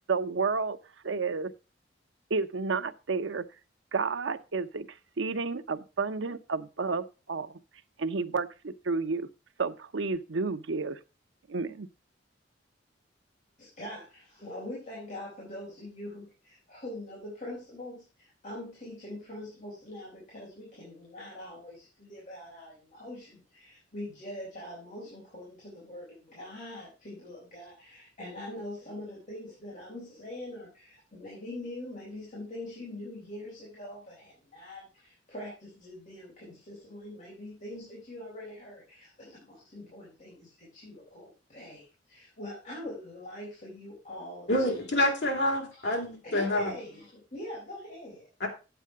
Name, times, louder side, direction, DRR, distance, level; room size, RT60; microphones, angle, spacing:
voice 1, 0.1-0.8 1.0-1.5 2.3-3.4 3.9-4.9 5.2-7.5 8.0-9.3 9.6-11.0 11.5-11.9, right 4 dB, 80° right, 0.7 m, -31 dB
voice 2, 13.6-44.9 45.8-46.0 46.2-48.3, left 1 dB, 45° left, 4.2 m, -43 dB
voice 3, 44.5-46.7 48.4-48.5, left 1 dB, 65° left, 3.2 m, -27 dB
8.5 x 8.0 x 4.7 m
head